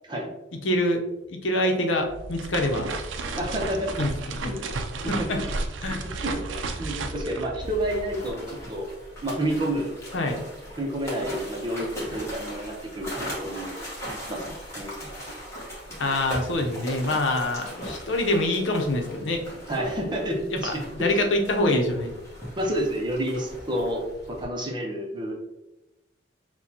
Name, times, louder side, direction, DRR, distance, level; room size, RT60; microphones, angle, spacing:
voice 1, 0.6-1.0 1.3-2.9 4.0-4.5 5.1-5.4 5.8-6.1 10.1-10.4 16.0-19.4 20.5-22.1, left 1 dB, 85° left, 3 dB, 0.7 m, -25 dB
sound 1, 2.0-8.4, right 3 dB, 85° right, 0.5 m, -33 dB
voice 2, 3.4-3.9 4.4-4.6 5.0-5.4 6.2-6.4 6.7-8.8 9.2-9.9 10.8-13.8 14.3-14.4 14.8-15.0 19.7-21.2 22.6-24.0 24.3-25.3, right 1 dB, 25° right, 0 dB, 0.7 m, -29 dB
sound 2, 7.6-24.4, equal, 15° left, 1.2 m, -39 dB
6.4 x 2.3 x 2.8 m, 0.98 s
head